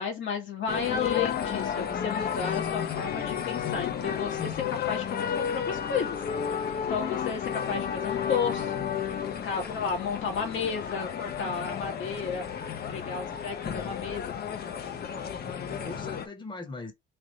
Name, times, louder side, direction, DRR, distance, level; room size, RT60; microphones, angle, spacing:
voice 1, 0.0-6.2 6.7-12.5 12.9-14.3, left 6 dB, 75° left, 1.4 m, -33 dB
sound 1, 0.7-16.3, left 8 dB, 55° left, 0.8 m, -32 dB
voice 2, 13.6-14.1 15.1-16.9, left 2 dB, 25° left, 1.1 m, -43 dB
3.3 x 2.6 x 4.1 m
cardioid pair, 90°, 20 cm